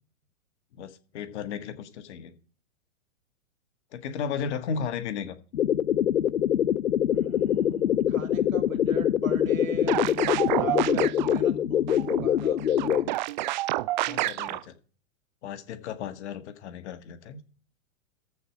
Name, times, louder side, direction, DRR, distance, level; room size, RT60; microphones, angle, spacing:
voice 1, 0.7-2.4 3.9-5.4 14.1-14.8 15.4-17.4, left 7 dB, 55° left, 11 dB, 1.8 m, -34 dB
voice 2, 4.2-4.6 7.1-10.2 10.5-13.0, right 4 dB, 90° right, 5 dB, 3.0 m, -40 dB
sound 1, 5.5-13.1, left 10 dB, 85° left, 0.6 m, -24 dB
sound 2, 9.9-11.4 11.9-14.6, right 16 dB, 40° right, 0.4 m, -29 dB
14.0 x 4.7 x 7.1 m, 0.41 s
hypercardioid pair, 115°, 40 cm